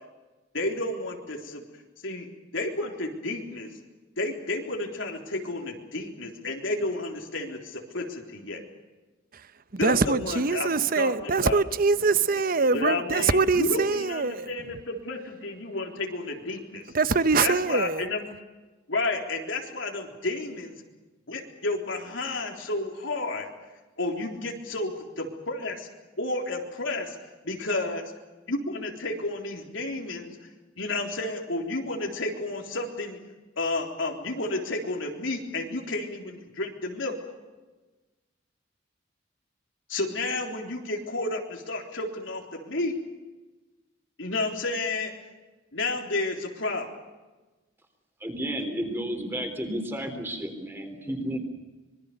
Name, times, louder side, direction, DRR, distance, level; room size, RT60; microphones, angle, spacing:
voice 1, 0.5-1.7 2.0-2.3 2.5-3.7 4.2-8.6 9.8-11.6 12.7-16.8 17.1-18.3 18.9-20.8 21.3-23.5 24.0-25.9 26.2-27.2 27.4-28.0 28.5-30.4 30.8-33.2 33.6-37.1 39.9-43.0 44.2-45.1 45.7-46.9, left 2 dB, 80° left, 3.8 m, -31 dB
voice 2, 9.8-14.5 16.9-18.0, right 4 dB, 50° right, 0.8 m, -23 dB
voice 3, 48.2-51.4, equal, 10° right, 3.8 m, -32 dB
25.5 x 22.0 x 6.8 m
head